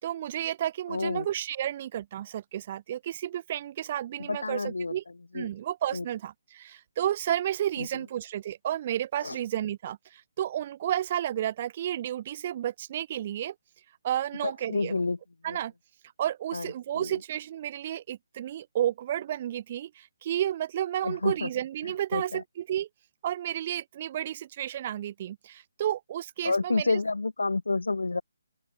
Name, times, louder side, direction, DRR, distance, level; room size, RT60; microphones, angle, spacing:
voice 1, 0.0-5.0 5.3-13.5 14.0-15.0 15.4-15.7 16.2-22.9 23.2-27.0, right 11 dB, 35° right, 5.1 m, -32 dB
voice 2, 0.9-1.3 4.2-4.9 5.3-5.5 5.9-6.0 7.8-7.9 9.2-9.4 14.4-15.2 15.5-15.6 16.5-17.1 21.0-21.5 22.1-22.4 26.4-28.2, left 3 dB, 90° left, 4.1 m, -29 dB
open air
hypercardioid pair, 160°, 0 cm